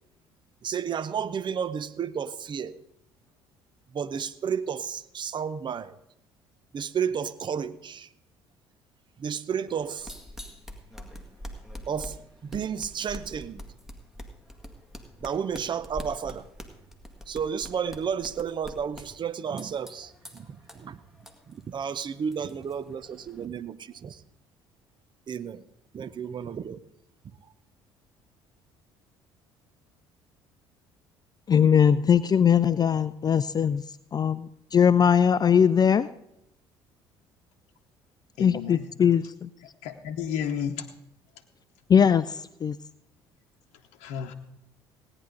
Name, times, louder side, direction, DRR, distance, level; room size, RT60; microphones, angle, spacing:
voice 1, 0.6-2.8 3.9-6.0 6.7-8.1 9.2-10.1 11.9-13.6 15.2-16.5 17.3-21.0 21.5-24.2 25.3-25.6 25.9-26.8, right 7 dB, 35° right, 15 dB, 0.7 m, -32 dB
sound 1, 9.7-23.5, equal, 5° right, 1.9 m, -45 dB
voice 2, 31.5-33.8 34.1-36.1 38.4-39.5 41.9-42.8, left 7 dB, 30° left, 15 dB, 0.4 m, -21 dB
voice 3, 38.4-38.9 39.8-40.8 44.0-44.3, left 8 dB, 65° left, 4 dB, 0.9 m, -32 dB
17.5 x 9.8 x 3.8 m, 0.83 s
hypercardioid pair, 55°, 13 cm